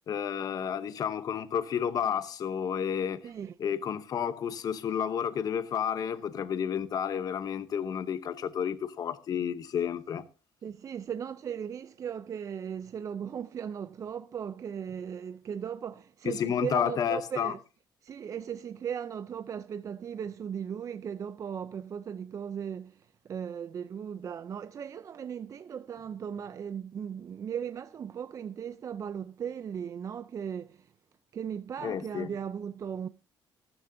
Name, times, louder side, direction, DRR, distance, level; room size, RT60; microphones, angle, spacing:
voice 1, 0.1-3.2 3.6-10.2 16.3-17.5 31.8-32.3, left 8 dB, 45° left, 0.8 m, -31 dB
voice 2, 3.2-3.6 4.9-5.0 10.6-17.6 18.0-30.9 31.3-33.1, right 8 dB, 40° right, 0.5 m, -37 dB
13.5 x 13.0 x 2.7 m
cardioid pair, 130°, 9 cm